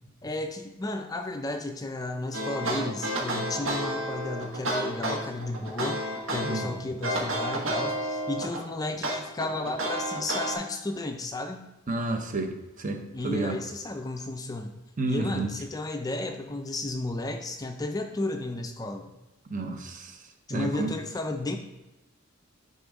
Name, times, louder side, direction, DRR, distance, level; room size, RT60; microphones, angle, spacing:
voice 1, 0.2-6.0 6.3-11.6 13.1-14.7 15.0-19.1 20.5-21.6, left 2 dB, 20° left, 5 dB, 0.4 m, -33 dB
sound 1, 2.3-6.7 7.0-8.6 9.0-10.5, right 1 dB, 70° right, 1.5 m, -30 dB
voice 2, 6.4-6.7 11.9-12.5 12.8-13.6 15.0-15.5 19.5-20.1 20.5-20.9, right 3 dB, 40° right, 5 dB, 0.8 m, -30 dB
9.8 x 4.2 x 3.6 m, 1.0 s
head